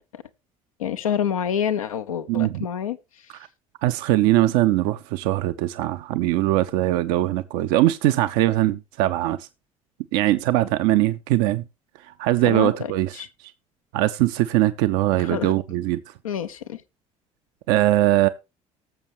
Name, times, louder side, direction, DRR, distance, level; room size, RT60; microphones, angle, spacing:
voice 1, 0.8-3.0 12.4-13.3 15.2-15.5 16.2-16.8, left 8 dB, 85° left, 0.7 m, -27 dB
voice 2, 2.3-2.6 3.8-9.5 10.1-11.6 12.2-13.5 13.9-16.0 17.7-18.3, right 15 dB, 65° right, 0.6 m, -21 dB
18.5 x 6.9 x 3.0 m
figure-of-eight pair, 55°, 17 cm